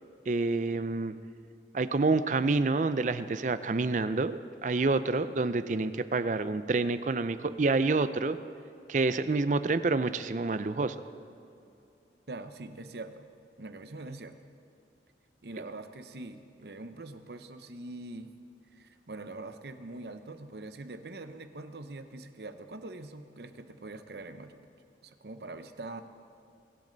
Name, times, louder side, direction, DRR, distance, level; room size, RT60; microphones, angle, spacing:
voice 1, 0.3-1.1 1.7-8.4 8.9-11.0, right 3 dB, 45° right, 12 dB, 0.5 m, -28 dB
voice 2, 12.3-13.3 13.6-14.4 15.4-18.3 18.7-24.6 25.0-26.0, right 2 dB, 70° right, 9 dB, 0.8 m, -43 dB
21.5 x 10.5 x 4.0 m, 2.7 s
head